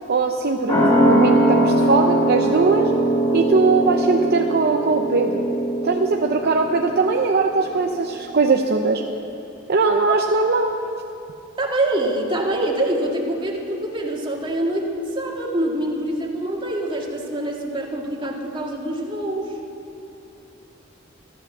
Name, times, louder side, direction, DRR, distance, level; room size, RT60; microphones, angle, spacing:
voice 1, 0.1-2.9 3.3-5.4 5.8-9.0 9.7-10.7, right 4 dB, 50° right, 3 dB, 0.7 m, -20 dB
sound 1, 0.7-7.7 8.0-8.1, right 1 dB, 30° left, 4.6 m, -21 dB
voice 2, 11.6-19.6, right 1 dB, 25° right, -1 dB, 2.0 m, -25 dB
13.5 x 13.0 x 7.2 m, 2.8 s
head